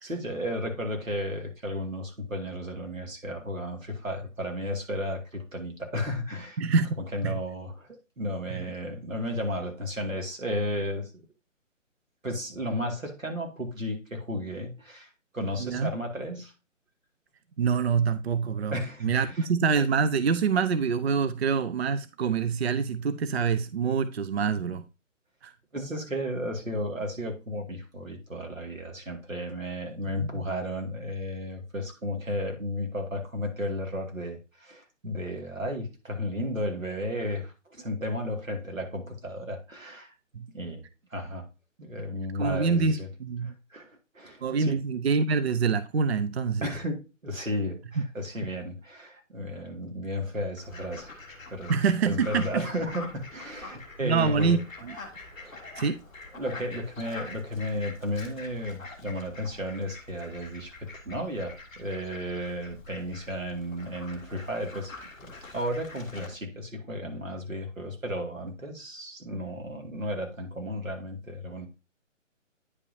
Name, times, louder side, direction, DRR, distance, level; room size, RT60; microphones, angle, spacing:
voice 1, 0.0-6.6 7.1-7.9 8.2-11.1 12.2-16.5 18.7-19.5 25.7-40.1 40.5-40.8 41.1-41.5 41.8-43.1 43.4-44.8 46.6-51.2 51.5-51.7 52.1-54.6 55.3-55.6 56.3-64.9 65.2-71.7, equal, 85° right, 2.2 m, -33 dB
voice 2, 6.6-6.9 7.2-7.4 8.5-8.6 15.6-15.9 17.6-18.8 19.0-24.8 25.4-25.5 30.2-30.5 40.3-40.5 42.4-43.5 44.4-46.7 48.0-48.1 51.7-52.7 54.0-55.0 55.8-56.0, right 5 dB, 55° right, 0.6 m, -26 dB
Fowl, 50.6-66.3, left 3 dB, 5° left, 0.8 m, -45 dB
9.6 x 5.4 x 2.7 m
figure-of-eight pair, 140°, 39 cm